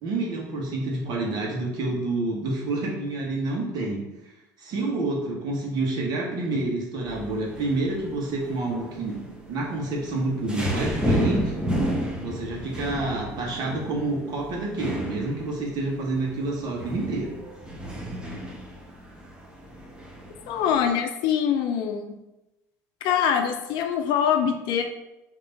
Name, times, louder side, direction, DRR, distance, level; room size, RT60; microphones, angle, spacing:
voice 1, 0.0-4.0 4.6-9.1 9.5-11.5 12.2-17.3, right 2 dB, 55° right, -2 dB, 1.4 m, -28 dB
sound 1, 7.0-20.9, equal, 10° right, 1.0 m, -32 dB
voice 2, 20.5-22.1 23.0-24.8, left 8 dB, 65° left, 5 dB, 0.6 m, -24 dB
3.4 x 2.9 x 4.0 m, 0.94 s
hypercardioid pair, 80°, 8 cm